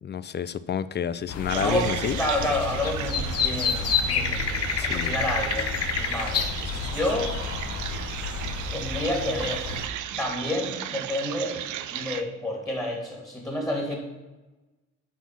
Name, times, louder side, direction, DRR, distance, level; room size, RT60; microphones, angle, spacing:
voice 1, 0.0-2.2 4.8-5.1, left 8 dB, 35° left, 15 dB, 0.4 m, -29 dB
sound 1, 1.3-9.9, left 5 dB, 55° left, 1.0 m, -29 dB
voice 2, 1.5-1.9 2.2-5.7 6.0-6.4 6.7-7.3 8.7-9.6 10.1-11.6 11.9-13.9, left 1 dB, 10° left, -1 dB, 2.6 m, -29 dB
sound 2, 1.5-12.2, right 11 dB, 80° right, 0.6 m, -35 dB
9.5 x 4.2 x 5.9 m, 1.1 s
cardioid pair, 90°, 30 cm